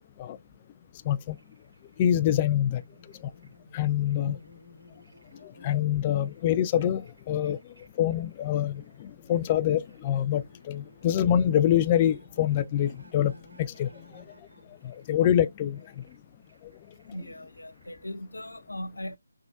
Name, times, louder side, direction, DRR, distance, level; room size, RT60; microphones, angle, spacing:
sound 1, 1.3-17.9, left 2 dB, 75° right, 2.2 m, -56 dB
voice 1, 2.0-2.8 3.7-4.4 5.4-7.6 8.0-13.3 13.6-13.9 14.8-16.0, left 10 dB, 20° left, 0.3 m, -25 dB
voice 2, 17.1-19.2, left 1 dB, 85° left, 0.8 m, -39 dB
5.7 x 3.6 x 2.3 m
figure-of-eight pair, 155°, 0 cm